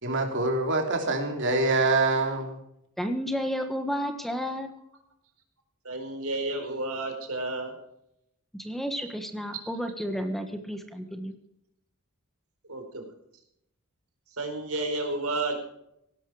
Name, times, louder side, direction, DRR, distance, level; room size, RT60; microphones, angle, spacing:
voice 1, 0.0-2.6, right 2 dB, 60° right, 3 dB, 3.4 m, -25 dB
voice 2, 3.0-4.7 8.6-11.3, equal, ahead, 6 dB, 1.3 m, -31 dB
voice 3, 5.8-7.7 12.7-13.1 14.3-15.6, right 2 dB, 80° right, 4 dB, 4.5 m, -31 dB
17.5 x 12.0 x 4.9 m, 0.76 s
head